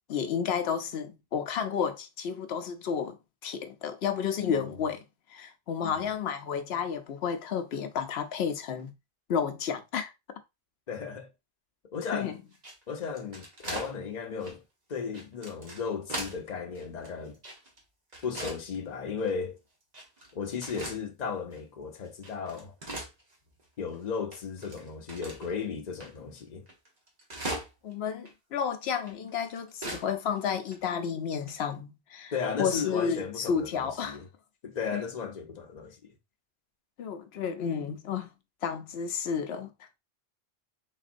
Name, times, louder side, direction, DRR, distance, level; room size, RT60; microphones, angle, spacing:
voice 1, 0.1-3.2 3.4-5.0 5.3-8.9 9.3-10.1 12.1-12.4 27.8-32.3 32.6-34.2 34.9-35.0 37.0-38.3 38.6-39.7, left 7 dB, 75° left, 0.9 m, -31 dB
voice 2, 10.9-11.3 11.9-12.3 12.9-14.6 14.9-17.4 18.2-19.6 20.3-22.7 23.8-26.6 32.3-34.3 34.6-36.1, left 6 dB, 45° left, 0.7 m, -35 dB
sound 1, 12.5-13.9 14.4-14.6 15.1-16.4 16.7-17.8 18.1-18.6 19.2-19.3 19.9-20.3 20.6-21.0 21.5-21.6 22.0-23.6 23.9-24.0 24.3-25.5 26.0-26.1 26.4-26.5 26.7-27.9 28.3-28.4 29.0-30.1 30.4-30.5 30.7-30.8 31.5-31.7, right 1 dB, 40° right, 1.2 m, -39 dB
4.1 x 3.6 x 2.5 m
omnidirectional pair, 1.1 m